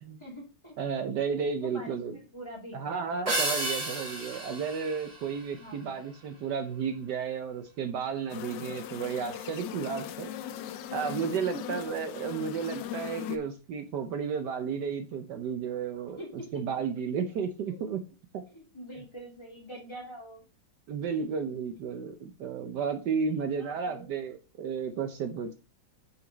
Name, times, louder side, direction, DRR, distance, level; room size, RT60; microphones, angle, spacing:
voice 1, 0.2-0.8 1.6-3.0 5.5-6.0 11.5-11.8 16.2-16.6 17.7-17.9 18.5-20.4 21.2-21.3 23.2-23.3 23.6-24.1, equal, 15° left, -2 dB, 2.5 m, -44 dB
voice 2, 0.8-2.2 2.7-10.3 10.9-16.2 16.5-18.0 18.3-18.4 20.9-25.5, right 6 dB, 70° right, 7 dB, 1.3 m, -33 dB
sound 1, 3.3-5.9, right 1 dB, 50° right, 3.4 m, -33 dB
sound 2, 8.3-13.4, left 10 dB, 75° left, 1.2 m, -39 dB
6.2 x 6.1 x 3.9 m, 0.32 s
omnidirectional pair, 2.0 m